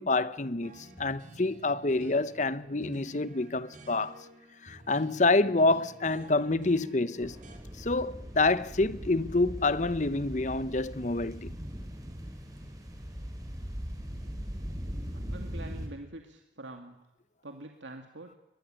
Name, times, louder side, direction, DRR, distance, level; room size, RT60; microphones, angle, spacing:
voice 1, 0.0-4.2 4.6-7.4 7.8-11.5, left 2 dB, 40° left, 0.9 m, -27 dB
sound 1, 0.6-7.6, equal, 40° right, 3.7 m, -50 dB
sound 2, 7.2-15.9, equal, 20° right, 4.5 m, -40 dB
voice 2, 15.1-17.0 17.4-18.4, right 2 dB, 75° right, 2.3 m, -45 dB
22.0 x 22.0 x 9.1 m
head